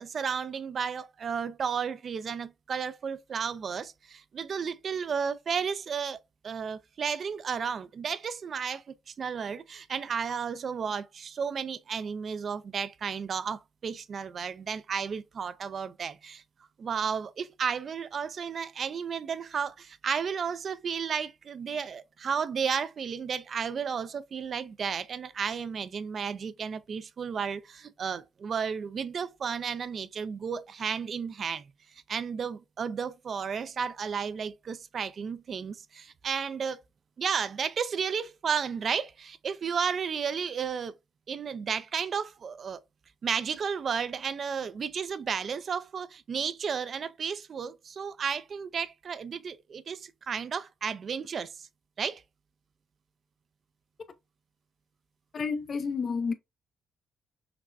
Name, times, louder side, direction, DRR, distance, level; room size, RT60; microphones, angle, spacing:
voice 1, 0.0-6.2 6.4-16.4 16.8-31.7 32.1-36.8 37.2-41.0 41.3-42.8 43.2-51.7 52.0-52.2, right 6 dB, 50° right, 0.4 m, -33 dB
voice 2, 55.3-56.3, left 5 dB, 45° left, 0.6 m, -30 dB
5.8 x 2.1 x 2.5 m
cardioid pair, 90°, 0 cm